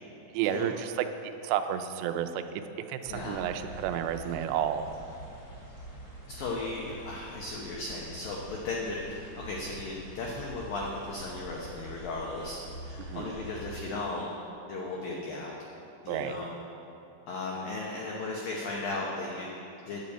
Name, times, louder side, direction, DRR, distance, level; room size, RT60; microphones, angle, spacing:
voice 1, 0.3-2.6 2.9-4.9 13.0-13.4 16.1-16.4, right 10 dB, 85° right, 8 dB, 2.5 m, -31 dB
voice 2, 3.1-3.4 6.3-14.3 14.7-15.5 16.0-16.5 17.3-19.5 19.9-20.0, left 3 dB, 80° left, -2 dB, 2.0 m, -36 dB
sound 1, 3.1-13.9, right 1 dB, 20° left, 2.4 m, -46 dB
10.5 x 7.2 x 8.7 m, 2.7 s
omnidirectional pair, 5.7 m